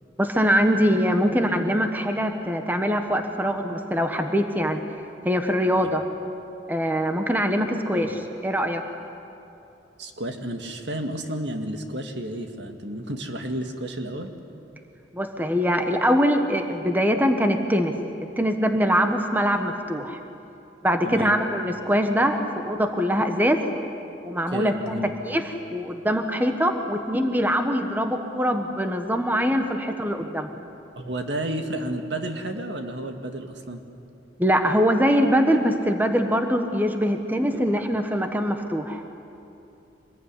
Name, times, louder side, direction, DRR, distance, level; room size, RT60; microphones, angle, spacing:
voice 1, 0.2-4.8 5.2-6.0 6.7-8.8 15.1-17.9 18.4-20.2 20.8-23.6 24.2-30.7 34.4-39.0, equal, 10° right, 5 dB, 1.3 m, -23 dB
voice 2, 10.0-14.3 21.0-21.3 24.5-25.1 31.0-33.8 37.5-37.6, right 1 dB, 65° right, 5 dB, 2.1 m, -31 dB
26.0 x 21.0 x 9.9 m, 2.8 s
head